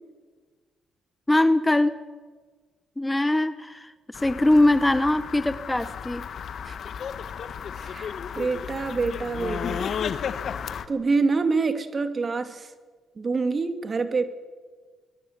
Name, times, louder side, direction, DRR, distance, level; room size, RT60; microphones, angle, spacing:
voice 1, 1.3-2.0 3.0-6.3, left 1 dB, 10° left, 13 dB, 1.0 m, -22 dB
sound 1, 4.1-10.9, left 7 dB, 60° left, 1.6 m, -33 dB
voice 2, 7.8-9.9 10.9-12.7 13.2-14.2, right 4 dB, 35° right, 9 dB, 2.5 m, -26 dB
24.5 x 21.0 x 9.4 m, 1.5 s
cardioid pair, 90°, 0 cm